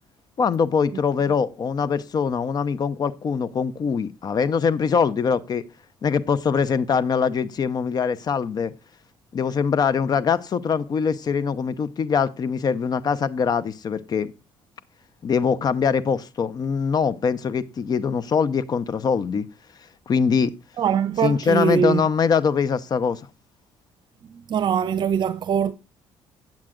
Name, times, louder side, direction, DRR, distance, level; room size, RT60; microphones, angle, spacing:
voice 1, 0.4-5.6 6.0-8.7 9.3-14.3 15.2-19.5 20.1-20.5 21.2-23.2, left 6 dB, 45° left, 0.8 m, -23 dB
voice 2, 20.8-22.0 24.3-25.7, right 7 dB, 50° right, 0.7 m, -22 dB
8.8 x 7.5 x 3.7 m
cardioid pair, 90°, 10 cm